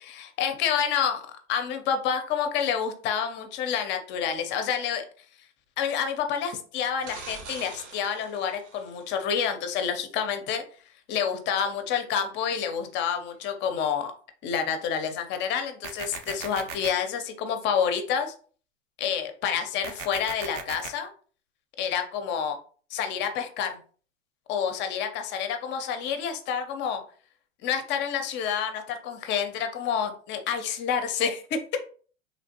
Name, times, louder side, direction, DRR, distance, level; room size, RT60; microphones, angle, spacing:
voice 1, 0.2-1.2 1.5-5.0 5.8-10.6 11.1-14.1 14.4-18.3 19.0-21.1 21.8-22.6 22.9-23.8 24.5-27.0 27.6-31.8, left 7 dB, 30° left, 7 dB, 0.5 m, -28 dB
sound 1, 7.0-9.2 13.4-13.5, right 4 dB, 65° right, 1.0 m, -44 dB
sound 2, 15.8-16.9 19.8-20.9, right 6 dB, 45° right, 0.6 m, -37 dB
3.2 x 2.4 x 2.7 m, 0.42 s
hypercardioid pair, 120°, 37 cm